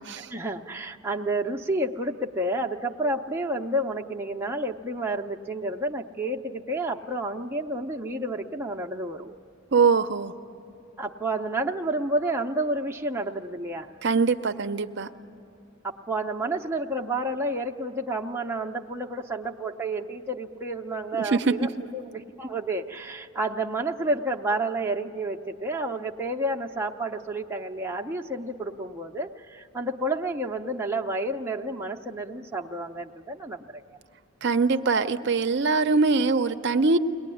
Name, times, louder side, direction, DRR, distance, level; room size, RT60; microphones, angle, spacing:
voice 1, 0.1-9.4 11.0-13.9 15.8-34.0, right 1 dB, 10° right, 1 dB, 0.6 m, -30 dB
voice 2, 9.7-10.3 14.0-15.1 21.2-21.5 34.4-37.0, right 4 dB, 55° right, 8 dB, 0.6 m, -22 dB
22.5 x 19.0 x 9.9 m, 2.7 s
head